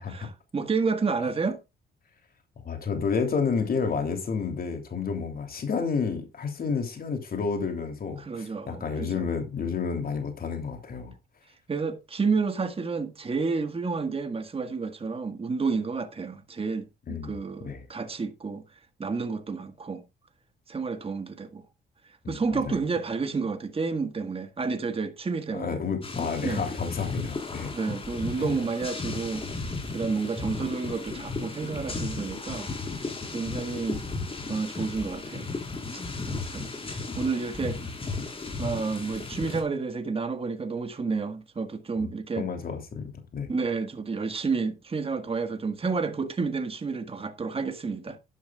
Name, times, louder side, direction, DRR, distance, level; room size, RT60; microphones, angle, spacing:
voice 1, 0.0-1.6 8.2-9.3 11.7-18.6 19.0-20.0 20.7-21.6 22.3-25.7 26.4-26.6 27.7-34.0 34.5-35.5 35.9-37.8 38.6-42.5 43.5-48.2, right 4 dB, 30° right, 1.7 m, -30 dB
voice 2, 2.6-11.1 17.1-17.3 17.6-17.9 22.2-22.8 25.5-27.7 28.4-28.6 42.0-42.1 42.4-43.5, left 5 dB, 50° left, 3.2 m, -30 dB
sound 1, 26.0-39.6, left 3 dB, 30° left, 4.3 m, -35 dB
12.5 x 11.0 x 2.4 m
cardioid pair, 90°, 20 cm